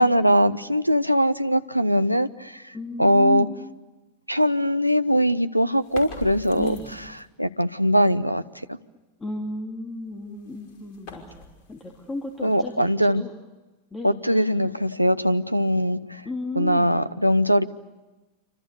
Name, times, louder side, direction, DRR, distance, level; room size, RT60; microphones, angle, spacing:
voice 1, 0.0-2.6 3.0-3.5 4.3-6.8 7.4-8.4 8.7-8.8 12.4-13.2 14.0-16.2 16.5-17.6, equal, 90° right, 11 dB, 0.9 m, -21 dB
voice 2, 2.7-3.5 6.6-6.9 9.2-13.3 13.9-14.1 16.2-17.0, left 2 dB, 15° left, 0 dB, 3.3 m, -34 dB
sound 1, 5.7-7.4 10.1-13.0, left 4 dB, 45° left, 5.5 m, -44 dB
28.0 x 25.5 x 6.7 m, 1.1 s
figure-of-eight pair, 90°, 0 cm